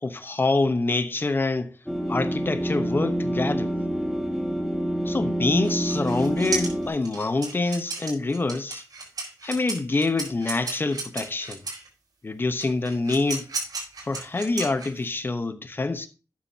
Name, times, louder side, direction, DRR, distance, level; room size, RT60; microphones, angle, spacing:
voice 1, 0.0-1.7 2.1-3.7 5.0-8.8 9.4-11.6 12.2-13.5 14.0-16.1, left 3 dB, 35° left, 1.1 m, -26 dB
sound 1, 1.9-6.9, equal, 5° left, 2.1 m, -27 dB
sound 2, 5.6-11.9 12.6-15.2, right 4 dB, 75° right, 4.4 m, -34 dB
12.0 x 8.7 x 2.9 m
wide cardioid pair, 115°, 7 cm